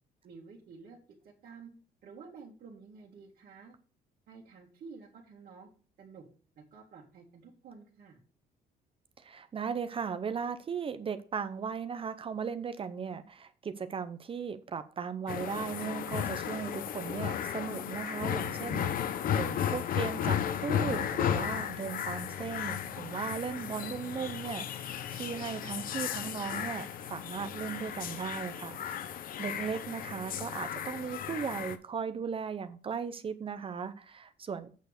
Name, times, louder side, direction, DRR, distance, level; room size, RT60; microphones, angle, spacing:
voice 1, 0.2-1.0 1.2-1.7 2.0-3.7 4.3-5.7 6.0-6.3 6.6-8.2, right 5 dB, 55° right, -3 dB, 2.0 m, -51 dB
voice 2, 9.2-29.0 29.4-34.7, right 6 dB, 30° right, 11 dB, 0.6 m, -37 dB
sound 1, 15.3-31.8, left 9 dB, 55° left, 0.8 m, -34 dB
8.2 x 4.6 x 6.4 m, 0.40 s
cardioid pair, 110°, 17 cm